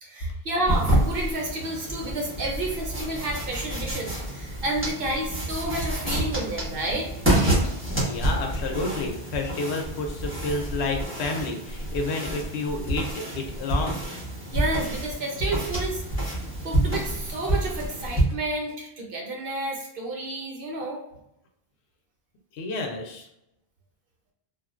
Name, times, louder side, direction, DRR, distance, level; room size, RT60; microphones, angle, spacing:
voice 1, 0.0-7.1 14.5-16.0 16.6-21.0, right 1 dB, 60° right, -1 dB, 0.9 m, -30 dB
sound 1, 0.7-18.2, right 1 dB, 10° right, 1.1 m, -28 dB
voice 2, 8.0-14.0 22.5-23.3, left 3 dB, 90° left, 3 dB, 0.9 m, -30 dB
3.7 x 2.2 x 2.4 m, 0.81 s
omnidirectional pair, 1.1 m